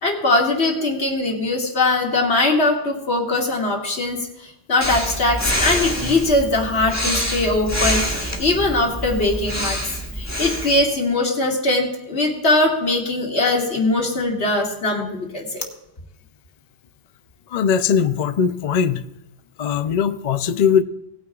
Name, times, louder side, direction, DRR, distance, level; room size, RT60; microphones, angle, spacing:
voice 1, 0.0-4.3 4.7-9.8 10.2-15.6, left 2 dB, 85° left, 0 dB, 2.4 m, -21 dB
Breathing, 4.8-10.8, equal, 15° left, 1.4 m, -26 dB
voice 2, 17.5-19.1 19.6-20.8, left 7 dB, 50° left, 10 dB, 0.5 m, -20 dB
19.0 x 9.6 x 2.4 m, 0.89 s
omnidirectional pair, 1.1 m